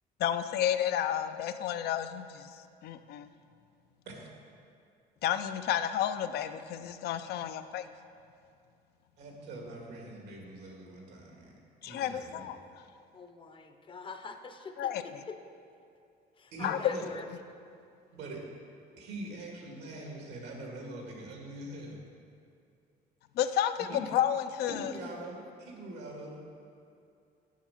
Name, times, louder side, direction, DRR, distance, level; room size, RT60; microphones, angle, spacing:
voice 1, 0.2-2.5 2.8-3.3 5.2-7.9 11.8-12.8 14.8-15.2 16.6-16.9 23.4-24.9, left 10 dB, 70° left, 10 dB, 0.5 m, -31 dB
voice 2, 9.2-11.5 11.8-12.5 16.5-17.1 18.1-18.4 19.0-22.0 23.8-24.0 24.7-26.4, right 1 dB, 80° right, -1 dB, 1.9 m, -43 dB
voice 3, 13.1-15.4 16.4-17.3, left 4 dB, 30° left, 6 dB, 0.6 m, -44 dB
7.3 x 6.4 x 5.7 m, 2.5 s
cardioid pair, 110°, 17 cm